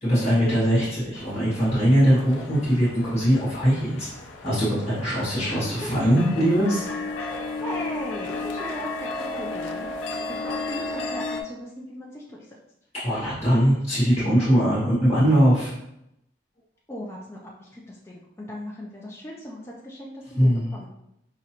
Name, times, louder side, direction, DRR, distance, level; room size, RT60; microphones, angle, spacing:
voice 1, 0.0-4.1 4.4-6.9 13.0-15.7 20.4-20.7, equal, 35° left, -9 dB, 1.6 m, -21 dB
sound 1, 1.1-11.4, left 3 dB, 80° left, 0.6 m, -34 dB
voice 2, 5.5-5.9 7.2-12.6 16.9-20.9, equal, 15° left, -3 dB, 0.4 m, -38 dB
4.8 x 3.0 x 2.9 m, 0.80 s
head